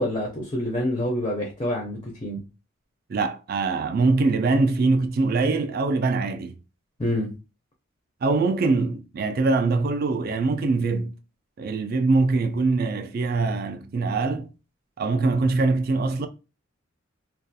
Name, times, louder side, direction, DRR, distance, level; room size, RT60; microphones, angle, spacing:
voice 1, 0.0-2.4 7.0-7.3, left 1 dB, 20° left, 0.4 m, -27 dB
voice 2, 3.1-6.5 8.2-11.1 11.6-14.5 15.0-16.3, right 3 dB, 45° right, 0.3 m, -23 dB
2.3 x 2.3 x 2.6 m
head